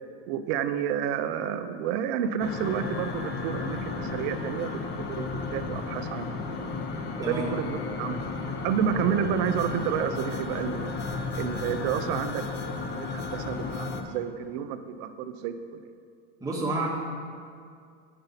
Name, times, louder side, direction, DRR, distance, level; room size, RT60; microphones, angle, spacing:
voice 1, 0.3-4.8 5.1-5.2 5.5-6.7 7.2-8.2 8.6-11.0 11.4-15.8, right 8 dB, 55° right, 9 dB, 0.6 m, -30 dB
sound 1, 2.4-14.0, left 4 dB, 30° left, 0.6 m, -33 dB
voice 2, 16.4-16.9, right 2 dB, 10° right, -4 dB, 1.4 m, -29 dB
8.8 x 5.4 x 4.1 m, 2.2 s
supercardioid pair, 115°, 38 cm